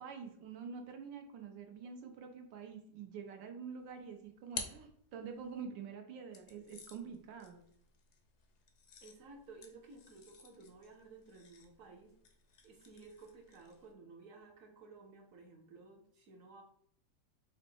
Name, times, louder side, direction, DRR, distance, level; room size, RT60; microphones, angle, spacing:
voice 1, 0.0-7.6, right 6 dB, 90° right, 4 dB, 1.5 m, -47 dB
sound 1, 3.8-5.6 6.3-13.9, left 5 dB, 70° left, 0.7 m, -51 dB
voice 2, 9.0-12.1 12.6-16.6, right 3 dB, 60° right, 2 dB, 1.0 m, -55 dB
5.0 x 2.1 x 4.4 m, 0.68 s
omnidirectional pair, 1.9 m